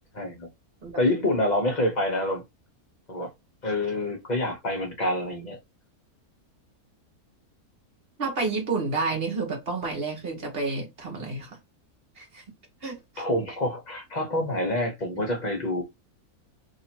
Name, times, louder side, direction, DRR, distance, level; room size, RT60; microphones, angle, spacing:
voice 1, 0.1-0.5 1.0-2.4 3.1-3.3 3.6-5.6 13.2-15.8, left 1 dB, 35° left, 0.9 m, -27 dB
voice 2, 8.2-11.6 12.2-12.4 12.8-13.2 15.2-15.3, right 4 dB, 40° right, 1.3 m, -30 dB
2.8 x 2.7 x 4.3 m
omnidirectional pair, 1.6 m